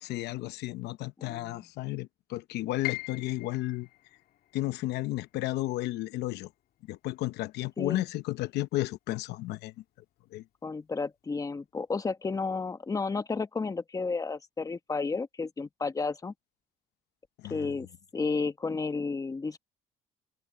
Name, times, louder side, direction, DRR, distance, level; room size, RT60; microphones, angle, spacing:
voice 1, 0.0-3.9 4.5-6.5 6.9-9.7 10.3-10.4 17.4-17.7, left 17 dB, 80° left, 0.8 m, -33 dB
voice 2, 1.2-1.6 7.8-8.0 10.6-16.3 17.5-17.9 18.1-19.6, left 4 dB, 20° left, 1.2 m, -32 dB
Piano, 2.8-8.8 9.1-10.3 10.7-10.8 11.5-11.8, left 19 dB, 65° left, 2.9 m, -44 dB
open air
cardioid pair, 110°, 17 cm